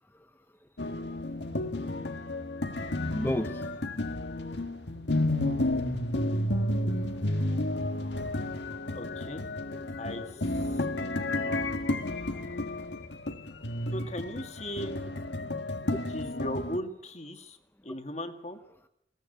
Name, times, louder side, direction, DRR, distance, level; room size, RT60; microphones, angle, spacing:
voice 1, 0.1-0.7 3.1-3.7 6.5-7.7 8.0-8.1 8.6-8.7 9.7-10.0 10.6-11.0 11.9-12.4 13.7-13.9 15.9-16.0 17.9-18.0 18.7-18.9, left 1 dB, 10° left, 6 dB, 0.8 m, -39 dB
sound 1, 0.8-16.8, left 1 dB, 80° left, 1.6 m, -31 dB
voice 2, 8.9-9.4 10.0-10.3 10.9-11.2 13.9-15.0 16.1-17.6 17.9-18.6, equal, 40° left, 7 dB, 1.9 m, -37 dB
22.0 x 18.0 x 9.2 m, 0.79 s
head